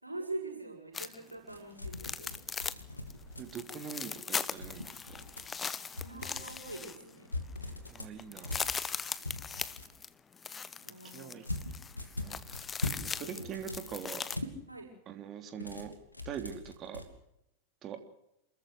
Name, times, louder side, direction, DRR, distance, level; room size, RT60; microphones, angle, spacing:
voice 1, 0.0-2.3 6.0-7.4 9.2-9.6 10.8-11.4 13.2-13.4 14.7-14.9, right 2 dB, 85° right, 0 dB, 7.3 m, -44 dB
sound 1, 0.9-1.3 1.9-2.8 3.1-3.2 3.5-7.2 7.6-7.7 7.9-14.4, left 6 dB, 20° left, 1.0 m, -39 dB
sound 2, 1.5-3.8 4.5-5.5 5.9-6.8 7.2-9.9 11.4-13.1 13.4-14.5 15.5-17.0, left 2 dB, 85° left, 2.8 m, -41 dB
voice 2, 3.4-5.0 7.9-8.7 11.1-11.5 12.2-12.4 13.2-14.3 15.1-15.9 16.3-17.0 17.8-18.0, right 8 dB, 30° right, 7 dB, 3.3 m, -42 dB
28.5 x 14.0 x 8.0 m, 0.82 s
figure-of-eight pair, 90°, 0 cm